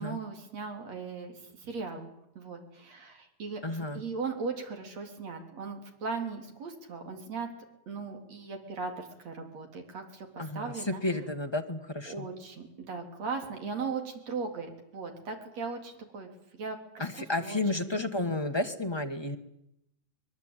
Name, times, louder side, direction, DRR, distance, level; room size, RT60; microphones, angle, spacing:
voice 1, 0.0-2.1 2.3-3.6 3.9-7.5 7.9-11.0 12.1-17.0 17.4-18.0, right 4 dB, 55° right, 5 dB, 4.8 m, -38 dB
voice 2, 3.6-4.0 10.4-12.3 17.0-19.4, left 2 dB, 30° left, 5 dB, 0.5 m, -32 dB
24.0 x 22.5 x 9.2 m, 0.80 s
omnidirectional pair, 3.5 m